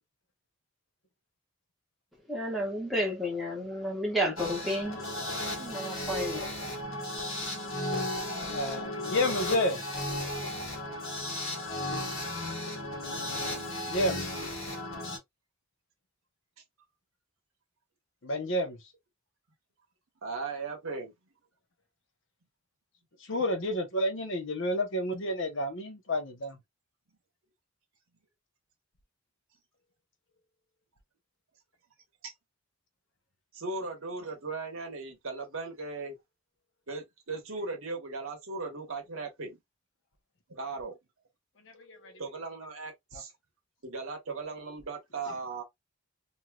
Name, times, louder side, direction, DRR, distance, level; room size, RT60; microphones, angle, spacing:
voice 1, 2.3-5.2 5.5-6.7, equal, ahead, 1.2 m, -32 dB
sound 1, 4.4-15.2, left 1 dB, 80° left, 1.2 m, -35 dB
voice 2, 8.5-9.8 13.9-14.2 18.2-18.8 23.3-26.6 41.9-42.1, left 1 dB, 65° left, 0.8 m, -30 dB
voice 3, 20.2-21.1 32.2-32.3 33.5-36.2 36.9-39.6 40.5-41.0 42.2-43.3 43.8-45.6, right 3 dB, 80° right, 1.2 m, -37 dB
3.0 x 2.7 x 2.2 m
head